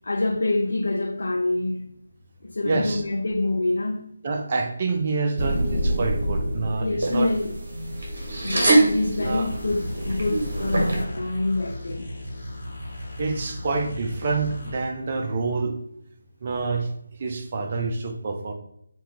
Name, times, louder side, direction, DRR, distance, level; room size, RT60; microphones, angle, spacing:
voice 1, 0.0-1.9 2.4-4.1 6.8-7.6 8.4-12.1, left 2 dB, 65° left, 0.3 m, -26 dB
voice 2, 2.6-3.0 4.2-7.3 9.2-9.5 13.2-15.7 16.4-16.9 17.2-18.5, right 3 dB, 40° right, 0.5 m, -27 dB
sound 1, 5.4-11.0, right 1 dB, 55° right, 1.0 m, -24 dB
sound 2, 9.2-14.8, left 1 dB, 40° left, 0.9 m, -36 dB
2.8 x 2.3 x 3.7 m
figure-of-eight pair, 155°, 0 cm